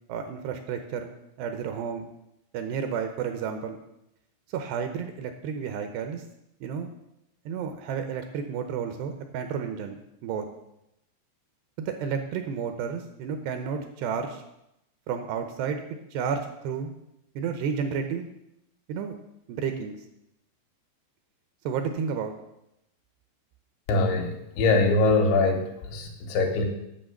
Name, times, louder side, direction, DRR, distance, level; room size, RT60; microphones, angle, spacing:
voice 1, 0.1-1.1 1.4-2.1 2.5-3.8 4.5-6.2 6.6-6.9 7.5-10.5 11.8-14.4 15.1-15.8 16.1-16.9 17.4-18.3 18.9-19.2 19.5-19.9 21.7-22.3, right 6 dB, 75° right, 7 dB, 2.6 m, -31 dB
voice 2, 23.9-26.7, left 3 dB, 80° left, 3 dB, 3.6 m, -23 dB
8.8 x 6.1 x 7.8 m, 0.84 s
omnidirectional pair, 5.3 m